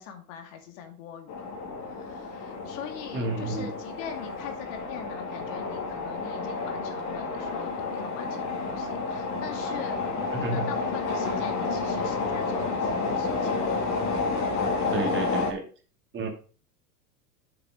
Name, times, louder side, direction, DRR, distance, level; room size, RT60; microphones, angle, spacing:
voice 1, 0.0-1.5 1.9-13.5, left 8 dB, 50° left, 5 dB, 2.4 m, -42 dB
sound 1, 1.3-15.5, left 3 dB, 35° left, 2.8 m, -30 dB
voice 2, 3.1-3.7 10.3-10.7 14.9-15.6 16.1-16.3, right 3 dB, 25° right, 3 dB, 2.5 m, -30 dB
7.7 x 6.9 x 5.1 m, 0.38 s
hypercardioid pair, 105°, 48 cm